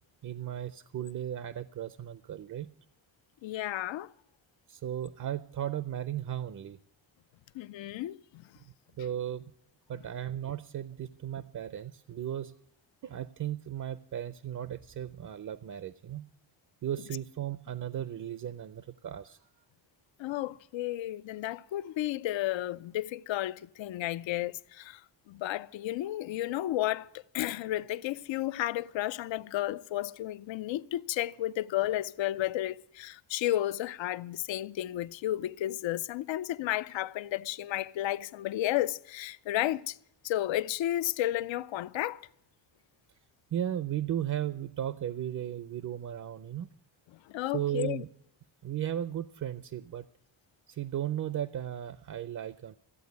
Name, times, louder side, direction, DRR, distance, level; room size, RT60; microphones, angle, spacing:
voice 1, 0.2-2.7 4.7-6.8 8.6-9.4 9.9-12.6 13.0-16.2 16.8-19.4 43.5-46.7 47.5-48.1 48.6-50.1 50.7-52.7, right 11 dB, 45° right, 0.4 m, -36 dB
voice 2, 3.4-4.1 7.5-8.4 20.2-25.0 25.3-40.0 40.2-42.3 47.3-48.0, left 14 dB, 85° left, 0.5 m, -32 dB
14.0 x 8.6 x 9.3 m
wide cardioid pair, 155°, 44 cm